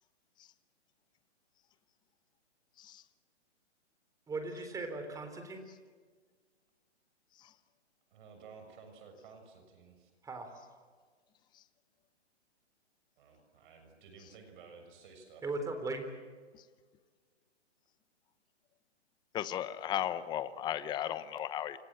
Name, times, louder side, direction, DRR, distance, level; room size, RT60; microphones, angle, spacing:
voice 1, 4.3-5.6 10.2-10.7 15.4-16.0, right 3 dB, 10° right, 6 dB, 3.9 m, -38 dB
voice 2, 8.1-10.1 13.2-15.4, right 5 dB, 45° right, 5 dB, 6.7 m, -54 dB
voice 3, 19.3-21.8, left 11 dB, 10° left, 14 dB, 0.9 m, -35 dB
29.5 x 26.0 x 7.7 m, 1.6 s
hypercardioid pair, 145°, 35 cm